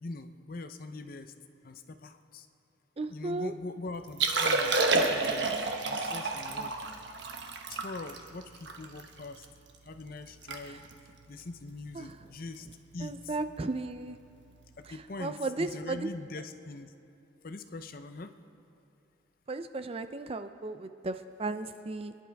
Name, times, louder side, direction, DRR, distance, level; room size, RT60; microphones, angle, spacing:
voice 1, 0.0-1.3 1.6-2.5 3.1-5.6 5.9-6.7 7.7-9.4 9.8-10.8 11.3-12.7 12.9-13.2 14.9-16.9 17.4-18.3, left 2 dB, 50° left, 9 dB, 0.6 m, -42 dB
voice 2, 3.0-3.5 10.6-10.8 11.9-12.3 13.0-14.2 14.8-16.1 19.5-22.2, right 3 dB, 30° right, 10 dB, 0.4 m, -35 dB
Liquid, 4.1-9.5 9.9-10.0 10.3-10.6 10.8-11.1 11.7-11.9 13.4-13.5, right 3 dB, 65° right, 1.1 m, -29 dB
26.5 x 11.0 x 3.5 m, 2.6 s
head